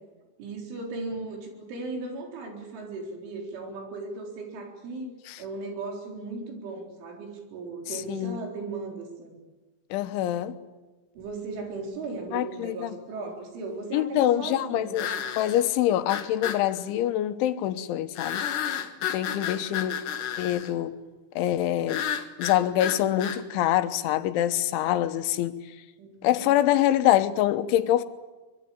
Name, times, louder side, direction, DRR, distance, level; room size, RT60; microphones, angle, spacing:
voice 1, 0.4-5.1 5.4-9.3 11.2-15.2 26.0-26.5, right 3 dB, 85° right, 6.7 m, -37 dB
voice 2, 8.1-8.4 9.9-10.6 12.3-12.9 13.9-15.1 15.4-18.5 19.1-20.0 20.4-21.0 21.4-22.1 22.4-25.8 26.2-28.0, left 12 dB, 85° left, 3.5 m, -25 dB
sound 1, 11.3-11.4 15.0-15.6 16.1-16.6 18.2-20.7 21.9-23.4, left 9 dB, 60° left, 2.4 m, -32 dB
24.0 x 22.5 x 8.8 m
omnidirectional pair, 5.4 m